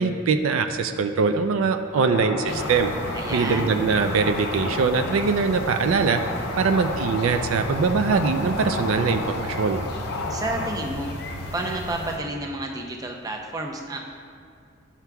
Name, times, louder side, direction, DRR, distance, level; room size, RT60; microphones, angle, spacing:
voice 1, 0.0-2.9 3.3-6.2 6.6-9.8, right 5 dB, 80° right, 7 dB, 0.4 m, -22 dB
sound 1, 1.9-10.7, left 2 dB, 90° left, 0.6 m, -32 dB
sound 2, 2.5-12.2, left 1 dB, 50° left, 0.7 m, -35 dB
voice 2, 3.1-3.8 10.3-11.1 11.5-14.0, right 2 dB, 15° right, 1 dB, 0.5 m, -30 dB
11.0 x 5.8 x 2.3 m, 2.3 s
head